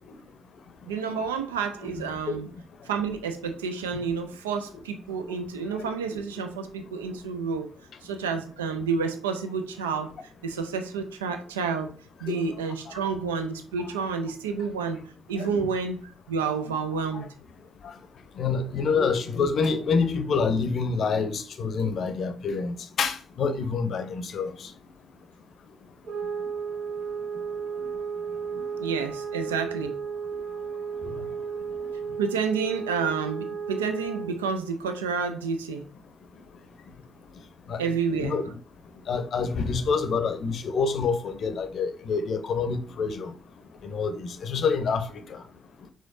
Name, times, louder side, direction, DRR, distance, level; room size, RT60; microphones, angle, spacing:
voice 1, 0.9-2.5 2.8-7.7 8.0-10.1 10.4-11.9 12.2-15.0 15.3-17.3 28.8-29.9 32.2-35.8 37.8-38.4, right 5 dB, 85° right, 0.4 m, -29 dB
voice 2, 5.8-6.2 12.3-12.4 15.4-15.7 17.1-17.2 17.8-17.9 18.4-24.5 37.7-38.6 39.1-43.3 43.8-45.1, left 5 dB, 60° left, 0.6 m, -27 dB
sound 1, 26.0-34.4, right 6 dB, 65° right, 0.9 m, -34 dB
4.9 x 3.7 x 2.5 m
hypercardioid pair, 40°, 0 cm